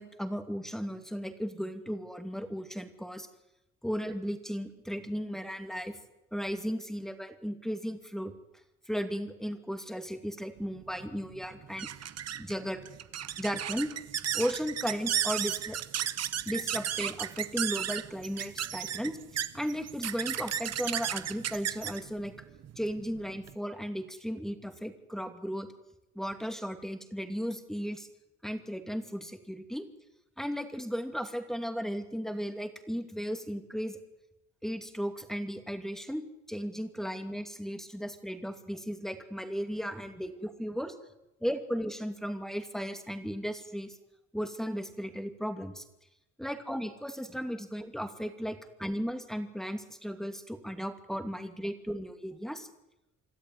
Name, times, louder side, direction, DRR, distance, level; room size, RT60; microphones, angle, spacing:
voice 1, 0.0-3.3 3.8-6.0 6.3-8.3 8.9-11.9 12.3-12.8 13.4-13.9 14.3-15.8 16.4-19.2 19.5-22.3 22.8-25.7 26.1-28.1 28.4-29.9 30.4-34.0 34.6-40.9 41.4-44.0 44.3-45.8 46.4-52.7, equal, ahead, 7 dB, 2.6 m, -35 dB
sound 1, 10.6-23.5, right 10 dB, 55° right, 1.1 m, -35 dB
26.0 x 13.5 x 9.6 m, 0.92 s
cardioid pair, 90°, 30 cm